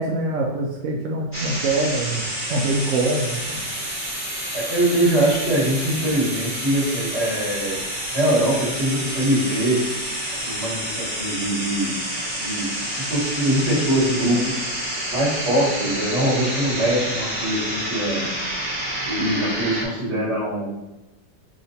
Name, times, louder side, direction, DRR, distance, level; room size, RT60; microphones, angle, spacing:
voice 1, 0.0-2.2 2.5-3.6, right 2 dB, 65° right, -1 dB, 0.8 m, -24 dB
sound 1, 1.3-19.8, right 1 dB, 10° right, 1.4 m, -29 dB
voice 2, 4.5-7.8 8.1-9.8 10.4-11.9 12.4-14.6 15.1-18.3 19.1-20.7, right 1 dB, 40° right, -6 dB, 1.6 m, -23 dB
6.2 x 2.9 x 2.7 m, 0.98 s
omnidirectional pair, 1.8 m